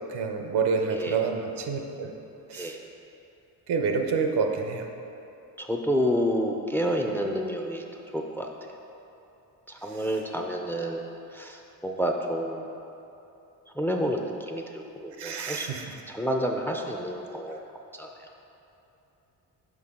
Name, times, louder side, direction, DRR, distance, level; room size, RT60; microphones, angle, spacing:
voice 1, 0.1-2.1 2.5-2.7 3.7-4.9 15.2-15.8, right 5 dB, 75° right, 3 dB, 0.8 m, -28 dB
voice 2, 5.6-7.8 8.1-8.5 9.7-11.0 11.3-12.8 13.8-17.6 17.9-18.3, equal, 5° left, 2 dB, 0.4 m, -29 dB
6.2 x 5.1 x 3.7 m, 3.0 s
cardioid pair, 70°, 40 cm